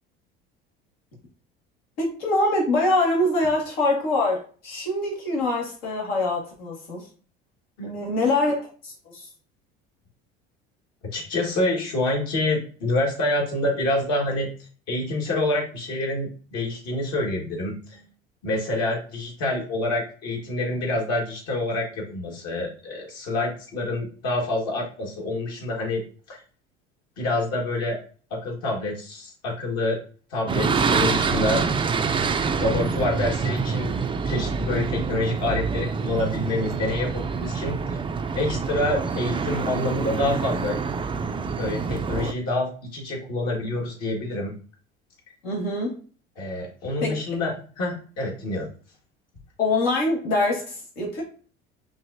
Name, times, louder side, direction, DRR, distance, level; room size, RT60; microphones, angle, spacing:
voice 1, 2.0-7.1 7.8-9.3 45.4-46.0 47.0-47.1 49.6-51.2, left 2 dB, 80° left, -2 dB, 1.8 m, -24 dB
voice 2, 7.8-8.1 11.1-14.5 14.9-18.0 18.4-26.0 26.3-26.4 27.2-28.0 28.3-30.0 30.3-31.6 32.1-32.3 32.6-33.9 34.3-38.0 38.3-40.8 41.6-44.5 46.4-48.7, left 2 dB, 60° left, 0 dB, 1.8 m, -27 dB
sound 1, 30.5-42.3, right 5 dB, 15° right, 0.4 m, -26 dB
5.8 x 2.7 x 2.7 m, 0.40 s
hypercardioid pair, 70°, 29 cm